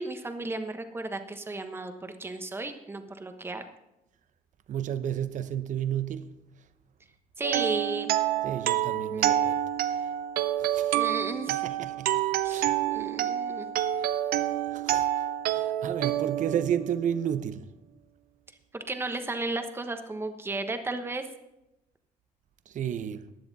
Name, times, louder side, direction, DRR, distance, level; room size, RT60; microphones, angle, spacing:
voice 1, 0.0-3.6 7.4-8.1 9.1-9.4 10.9-11.6 12.4-12.6 12.9-13.7 18.7-21.2, right 2 dB, 15° right, 1.1 m, -34 dB
voice 2, 4.7-6.3 8.4-10.1 10.6-11.0 11.5-12.2 12.5-12.8 14.0-14.2 14.6-17.7 22.7-23.3, right 9 dB, 55° right, 0.8 m, -32 dB
sound 1, 7.4-17.3, right 12 dB, 85° right, 0.7 m, -28 dB
15.5 x 10.5 x 4.1 m
cardioid pair, 135°, 15 cm